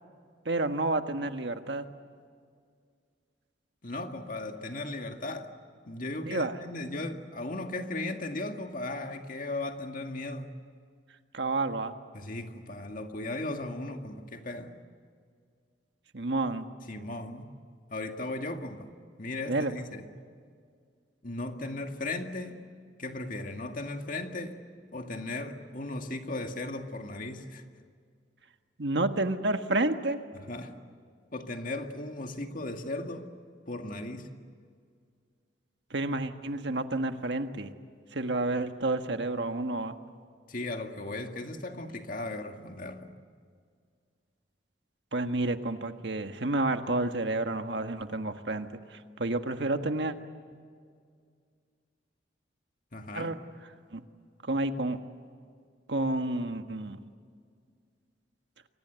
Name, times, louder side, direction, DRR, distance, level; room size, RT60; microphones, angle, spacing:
voice 1, 0.4-1.9 6.3-6.5 11.3-11.9 16.1-16.7 19.5-19.7 28.8-30.2 35.9-37.7 38.1-39.9 45.1-50.1 53.1-53.4 53.9-54.0 54.4-55.0 55.9-57.0, right 2 dB, 70° right, 7 dB, 1.6 m, -30 dB
voice 2, 3.8-5.5 5.8-10.5 12.1-14.8 16.9-17.5 17.9-18.9 19.2-20.1 21.2-22.7 23.0-24.6 24.9-27.6 30.3-30.8 31.3-33.3 33.7-34.3 40.5-43.2 52.9-53.4, left 2 dB, 45° left, 5 dB, 2.1 m, -37 dB
29.5 x 24.5 x 8.2 m, 2.1 s
head